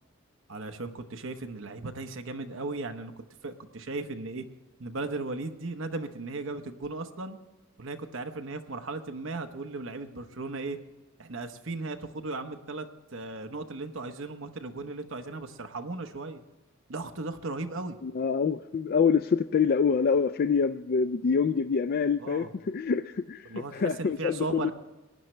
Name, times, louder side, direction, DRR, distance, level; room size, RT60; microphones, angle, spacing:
voice 1, 0.5-3.1 3.4-4.5 4.8-7.4 7.8-10.8 11.2-12.9 13.1-16.4 16.9-18.0 22.2-22.5 23.4-24.7, right 3 dB, 65° right, 7 dB, 1.0 m, -36 dB
voice 2, 18.0-24.7, left 6 dB, 45° left, 10 dB, 0.3 m, -26 dB
18.5 x 10.5 x 3.3 m, 1.1 s
head